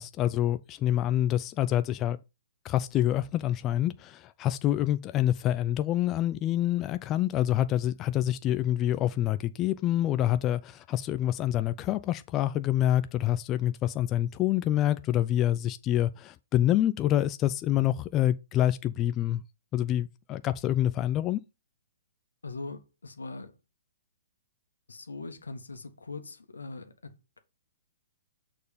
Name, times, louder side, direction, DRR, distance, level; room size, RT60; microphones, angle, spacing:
voice 1, 0.0-2.2 2.6-19.4 19.7-21.4, left 12 dB, 25° left, 0.4 m, -27 dB
voice 2, 22.4-23.5 24.9-27.4, left 3 dB, 90° left, 1.4 m, -41 dB
6.6 x 4.4 x 5.0 m
hypercardioid pair, 130°, 0 cm